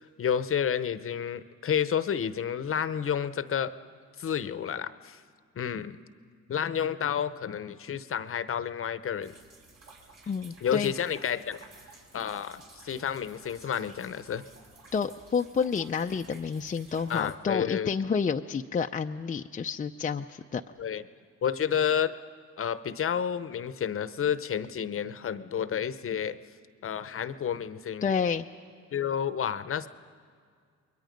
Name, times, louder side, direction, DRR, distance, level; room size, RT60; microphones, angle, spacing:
voice 1, 0.0-3.7 4.2-5.2 5.6-6.0 6.5-9.3 10.6-11.6 12.1-14.4 17.1-17.9 20.8-21.0 21.4-22.1 22.6-26.4 26.8-28.1 28.9-29.9, left 8 dB, 45° left, 13 dB, 0.8 m, -30 dB
sound 1, 9.2-17.3, right 3 dB, 55° right, 4.3 m, -54 dB
voice 2, 10.3-10.9 14.9-20.6 28.0-28.5, left 6 dB, 25° left, 5 dB, 0.5 m, -29 dB
28.5 x 22.0 x 5.2 m, 2.1 s
cardioid pair, 90°, 30 cm